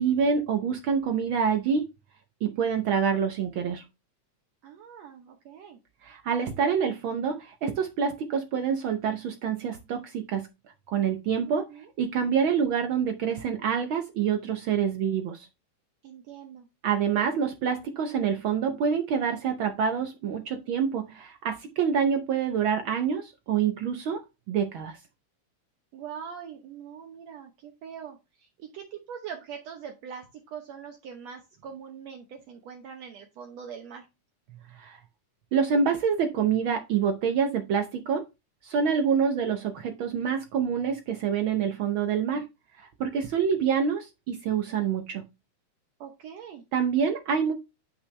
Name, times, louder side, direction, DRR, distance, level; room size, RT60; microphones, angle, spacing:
voice 1, 0.0-1.8 2.4-3.8 6.0-10.5 10.9-11.7 12.0-15.5 16.8-25.0 34.7-35.0 35.5-38.2 38.6-42.4 42.8-45.2 46.7-47.5, right 7 dB, 90° right, 6 dB, 1.1 m, -26 dB
voice 2, 4.6-5.8 11.5-11.9 16.0-16.7 25.9-34.1 43.4-43.8 46.0-46.6, right 7 dB, 65° right, 3 dB, 2.1 m, -43 dB
9.7 x 5.9 x 3.2 m, 0.25 s
omnidirectional pair, 3.5 m